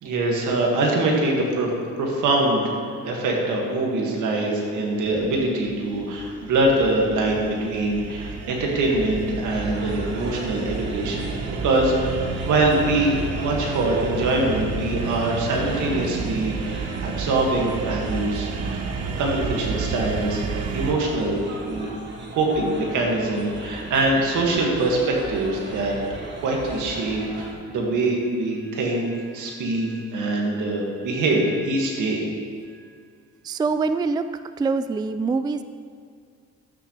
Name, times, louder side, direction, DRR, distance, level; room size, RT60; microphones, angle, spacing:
voice 1, 0.0-1.7 2.0-2.7 3.0-11.3 11.6-18.5 19.2-20.4 20.7-21.9 22.3-26.0 26.4-32.2, right 2 dB, 85° right, -1 dB, 2.1 m, -23 dB
sound 1, 5.0-20.9, right 4 dB, 55° right, 0.9 m, -31 dB
sound 2, 9.5-27.5, right 2 dB, 35° right, 1.8 m, -38 dB
voice 2, 33.4-34.3 34.6-35.6, right 4 dB, 15° right, 11 dB, 0.3 m, -24 dB
12.5 x 9.0 x 3.3 m, 2.2 s
cardioid pair, 90°, 30 cm